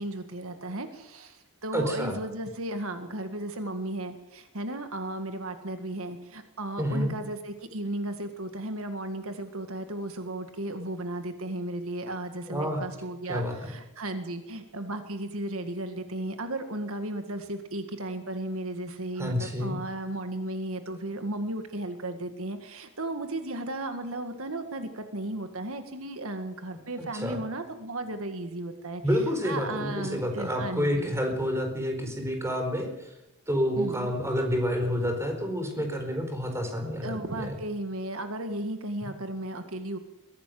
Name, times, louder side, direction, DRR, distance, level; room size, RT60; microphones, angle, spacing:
voice 1, 0.0-29.0 29.4-31.1 33.8-34.1 37.0-40.0, right 1 dB, 65° right, 7 dB, 1.9 m, -35 dB
voice 2, 1.7-2.2 6.8-7.1 12.5-12.8 13.3-13.7 19.2-19.8 27.0-27.4 29.0-33.1 33.5-37.6, equal, 15° right, 4 dB, 4.4 m, -29 dB
22.5 x 16.0 x 7.8 m, 0.89 s
head